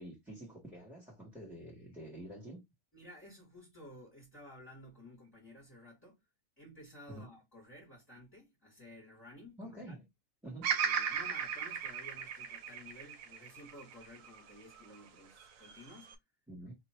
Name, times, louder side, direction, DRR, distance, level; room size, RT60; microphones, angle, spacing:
voice 1, 0.0-2.6 7.1-7.3 9.6-10.1 10.4-10.7 16.5-16.8, right 1 dB, ahead, 1.4 m, -48 dB
voice 2, 2.9-6.2 6.6-9.9 10.6-16.2, left 1 dB, 15° left, 1.7 m, -54 dB
Bird vocalization bird call bird song, 10.6-14.8 15.4-16.1, right 7 dB, 80° right, 1.1 m, -36 dB
2.9 x 2.7 x 4.4 m
omnidirectional pair, 1.4 m